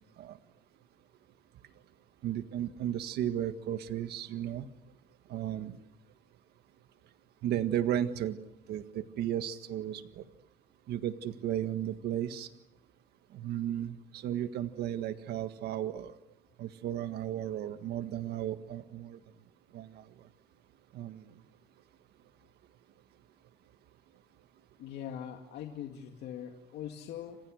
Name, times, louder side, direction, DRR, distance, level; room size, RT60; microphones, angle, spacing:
voice 1, 2.2-4.7 5.3-5.8 7.4-8.4 8.7-10.2 10.9-12.5 13.3-16.1 16.6-19.2 19.7-20.0 20.9-21.3, right 11 dB, 75° right, 10 dB, 1.7 m, -34 dB
voice 2, 24.8-27.4, left 9 dB, 80° left, 3 dB, 2.3 m, -42 dB
30.0 x 26.0 x 6.5 m, 0.88 s
cardioid pair, 110°, 17 cm